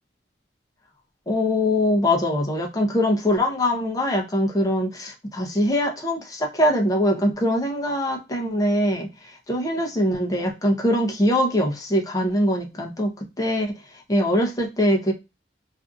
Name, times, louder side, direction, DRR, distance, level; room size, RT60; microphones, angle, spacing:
voice 1, 1.3-9.1 9.5-13.1 13.4-13.7 14.1-15.1, left 1 dB, 20° left, 1 dB, 0.6 m, -22 dB
2.6 x 2.5 x 2.3 m, 0.25 s
head